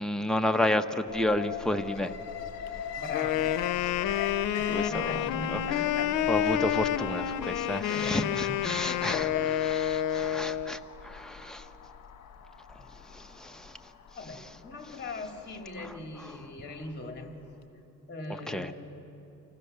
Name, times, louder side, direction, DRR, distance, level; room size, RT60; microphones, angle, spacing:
voice 1, 0.0-2.1 4.7-5.1 5.5-5.6 6.3-9.3 9.6-11.6 13.1-13.8 14.3-14.4 18.5-18.7, left 1 dB, ahead, 6 dB, 1.0 m, -31 dB
Alarm, 1.1-17.2 17.5-17.6, left 7 dB, 60° left, 1.4 m, -42 dB
voice 2, 3.0-3.6 4.9-6.1 7.9-8.4 8.9-9.7 10.6-10.8 14.1-17.4 18.1-18.7, left 3 dB, 35° left, 3 dB, 2.8 m, -39 dB
Wind instrument woodwind instrument, 3.1-10.8, left 11 dB, 85° left, 0.6 m, -29 dB
25.5 x 16.0 x 6.8 m, 2.9 s
cardioid pair, 90°, 30 cm